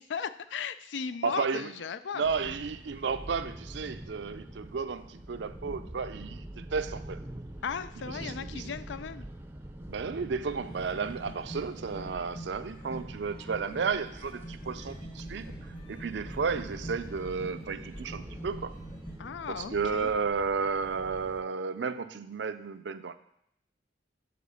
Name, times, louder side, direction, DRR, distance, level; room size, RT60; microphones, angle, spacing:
voice 1, 0.0-2.5 7.6-9.3 19.2-20.1, left 6 dB, 70° left, 13 dB, 0.4 m, -37 dB
voice 2, 1.2-1.7 2.1-7.2 8.2-8.7 9.9-18.8 19.5-23.2, right 5 dB, 65° right, 11 dB, 0.5 m, -33 dB
sound 1, 2.2-21.4, right 1 dB, 10° right, 0.6 m, -45 dB
sound 2, 10.5-19.2, right 1 dB, 40° left, 1.4 m, -46 dB
8.5 x 4.2 x 6.9 m, 0.73 s
head